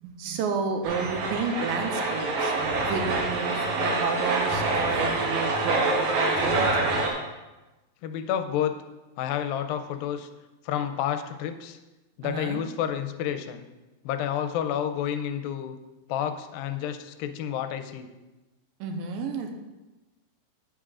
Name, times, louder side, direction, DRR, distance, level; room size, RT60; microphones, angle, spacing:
voice 1, 0.0-7.0 12.2-12.6 18.8-19.5, right 5 dB, 85° right, 4 dB, 2.4 m, -31 dB
sound 1, 0.8-7.1, right 2 dB, 60° right, 2.2 m, -26 dB
voice 2, 8.0-8.7 9.2-10.3 10.7-11.8 12.2-13.7 14.0-15.8 16.1-18.1, left 9 dB, 85° left, 8 dB, 2.3 m, -30 dB
8.8 x 8.8 x 2.5 m, 1.1 s
omnidirectional pair, 4.1 m